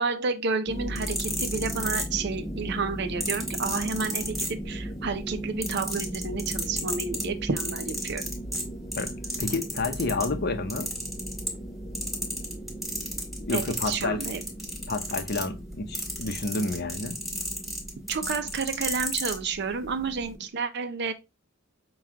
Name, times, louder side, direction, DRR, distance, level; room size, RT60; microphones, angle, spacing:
voice 1, 0.0-8.3 13.5-14.4 18.1-21.1, right 4 dB, 55° right, 0.6 m, -30 dB
sound 1, 0.7-20.5, right 1 dB, 15° left, 0.6 m, -38 dB
sound 2, 0.8-2.5 3.2-4.9 5.3-10.3 10.7-11.7 11.9-19.4 20.1-20.3, equal, ahead, 1.5 m, -32 dB
voice 2, 9.0-10.9 13.4-14.2 14.9-17.2, left 3 dB, 50° left, 0.7 m, -30 dB
5.9 x 2.3 x 3.5 m
head